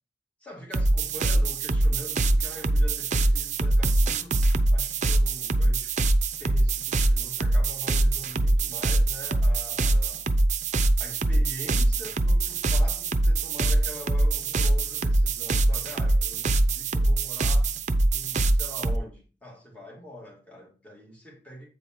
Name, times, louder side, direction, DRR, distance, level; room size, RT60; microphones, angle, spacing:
voice 1, 0.4-5.9 6.4-10.3 11.0-17.7 18.1-21.7, equal, 10° left, 2.5 m, -43 dB
sound 1, 0.7-19.0, right 2 dB, 45° right, 0.6 m, -23 dB
8.2 x 5.2 x 4.5 m
head